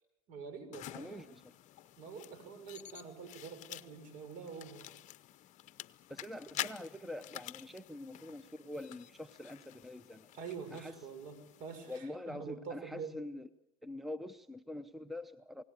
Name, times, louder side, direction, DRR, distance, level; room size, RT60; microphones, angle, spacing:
voice 1, 0.3-1.3 2.0-4.9 10.3-13.1, right 5 dB, 55° right, 8 dB, 5.9 m, -46 dB
sound 1, 0.7-12.0, left 14 dB, 45° left, 0.8 m, -48 dB
voice 2, 0.9-1.6 6.1-10.3 10.7-11.0 11.9-13.5 13.8-15.6, left 1 dB, ahead, 13 dB, 0.8 m, -45 dB
28.0 x 18.5 x 8.3 m, 0.95 s
supercardioid pair, 105°, 17 cm